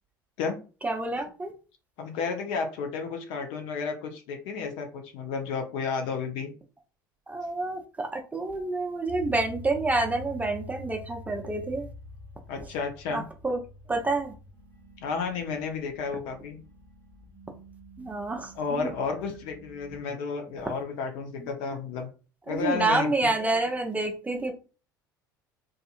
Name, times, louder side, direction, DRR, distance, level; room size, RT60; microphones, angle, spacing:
voice 1, 0.8-1.5 7.3-11.9 12.6-12.7 13.1-13.6 13.9-14.3 18.0-18.5 18.8-18.9 21.4-21.5 22.5-24.5, right 2 dB, 15° right, 2 dB, 0.6 m, -28 dB
voice 2, 2.0-6.5 12.5-13.2 15.0-16.6 18.5-22.1 22.5-23.3, left 5 dB, 60° left, 4 dB, 0.7 m, -32 dB
sound 1, 9.1-20.0, left 1 dB, 35° left, 1.4 m, -46 dB
2.6 x 2.5 x 2.4 m, 0.35 s
figure-of-eight pair, 65°, 11 cm